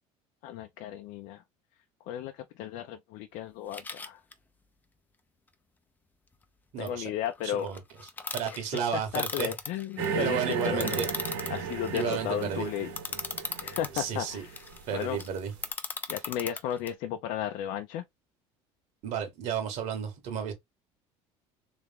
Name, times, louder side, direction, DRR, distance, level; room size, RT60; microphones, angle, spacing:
voice 1, 0.4-1.4 2.1-4.2 6.8-7.7 8.5-8.6 9.1-10.4 10.6-11.0 11.5-12.9 13.6-14.5 14.9-15.2 16.1-18.0, left 10 dB, 70° left, 0.6 m, -34 dB
sound 1, 3.7-4.3 6.9-7.0 7.2-14.0 14.3-16.9, left 4 dB, 15° left, 0.6 m, -38 dB
voice 2, 6.7-7.1 7.4-7.8 8.3-9.5 10.2-11.1 11.9-12.7 13.9-14.4 14.9-15.5 19.0-20.5, right 8 dB, 60° right, 1.7 m, -32 dB
sound 2, 10.0-15.6, right 6 dB, 90° right, 1.7 m, -35 dB
3.5 x 3.2 x 3.5 m
cardioid pair, 140°, 13 cm